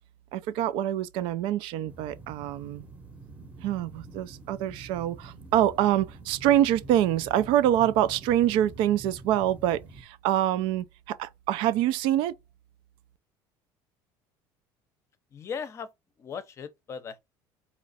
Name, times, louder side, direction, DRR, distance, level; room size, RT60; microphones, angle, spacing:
voice 1, 0.3-2.8 3.6-12.3, right 12 dB, 65° right, 0.5 m, -25 dB
sound 1, 1.9-10.0, right 2 dB, 15° right, 0.9 m, -46 dB
voice 2, 15.3-15.9 16.2-17.2, left 6 dB, 30° left, 0.7 m, -37 dB
4.3 x 2.5 x 4.0 m
cardioid pair, 145°, 9 cm